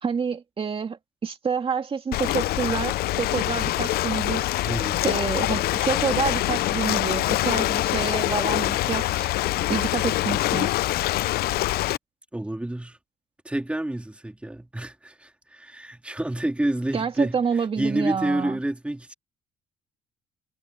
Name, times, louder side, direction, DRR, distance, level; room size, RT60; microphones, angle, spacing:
voice 1, 0.0-4.6 5.0-9.3 9.7-10.7 16.9-18.6, right 6 dB, 30° right, 2.1 m, -28 dB
Ocean, 2.1-12.0, left 16 dB, 70° left, 0.5 m, -25 dB
voice 2, 4.7-5.1 12.3-13.0 13.4-19.1, right 1 dB, 5° right, 2.7 m, -29 dB
cardioid pair, 110°, 17 cm